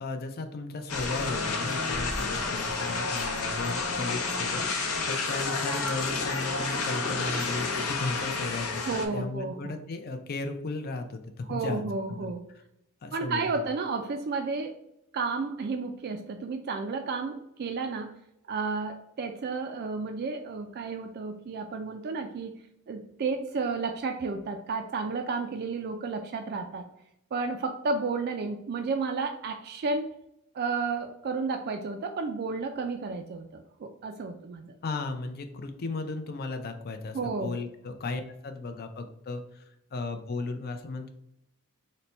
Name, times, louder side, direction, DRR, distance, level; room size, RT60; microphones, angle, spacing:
voice 1, 0.0-11.8 12.1-12.3 13.0-13.4 34.8-39.6 39.9-41.1, left 3 dB, 45° left, 7 dB, 0.5 m, -35 dB
sound 1, 0.9-9.1, left 4 dB, 70° left, 0.7 m, -30 dB
voice 2, 8.9-9.7 11.5-12.5 13.1-14.8 15.1-18.1 18.5-22.5 22.9-26.8 27.3-30.1 30.5-34.7 37.1-37.6, right 4 dB, 45° right, 5 dB, 0.3 m, -32 dB
4.0 x 2.2 x 4.2 m, 0.79 s
head